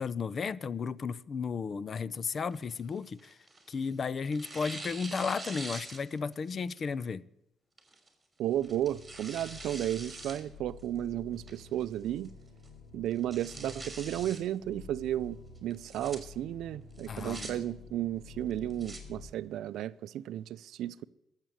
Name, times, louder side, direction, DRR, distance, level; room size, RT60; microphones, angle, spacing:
voice 1, 0.0-3.3 3.7-7.2 17.1-17.6, left 5 dB, 45° left, 0.5 m, -34 dB
Tearing, 2.5-3.8 4.3-6.4 6.8-6.9 7.8-8.1 8.6-10.4 10.8-10.9 11.5-11.9 12.2-12.3 12.6-12.7 13.1-14.4 15.7-16.2 17.0-17.5 18.5-19.0, right 2 dB, 15° right, 3.4 m, -44 dB
voice 2, 8.4-12.3 12.9-21.0, right 12 dB, 80° right, 0.5 m, -34 dB
sound 1, 8.5-19.3, left 5 dB, 85° left, 2.7 m, -50 dB
13.5 x 7.4 x 9.3 m
cardioid pair, 90°, 0 cm